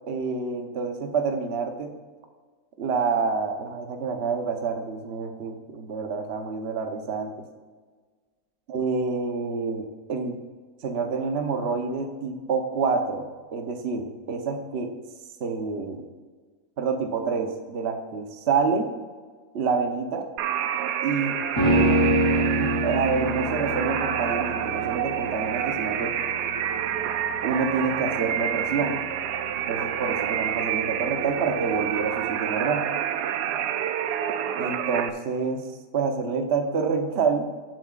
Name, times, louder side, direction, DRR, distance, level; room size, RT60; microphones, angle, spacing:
voice 1, 0.1-1.9 2.8-7.3 8.7-10.4 10.8-14.9 15.4-16.0 16.8-18.9 19.5-20.3 21.0-21.4 22.5-26.1 27.4-29.0 29.7-32.8 34.6-35.6 35.9-37.4, right 5 dB, 45° right, 4 dB, 1.1 m, -27 dB
sound 1, 20.4-35.1, right 10 dB, 85° right, 1.2 m, -28 dB
sound 2, 21.6-30.9 31.2-31.3, right 1 dB, 20° left, 2.8 m, -27 dB
18.5 x 7.6 x 2.5 m, 1.5 s
omnidirectional pair, 1.7 m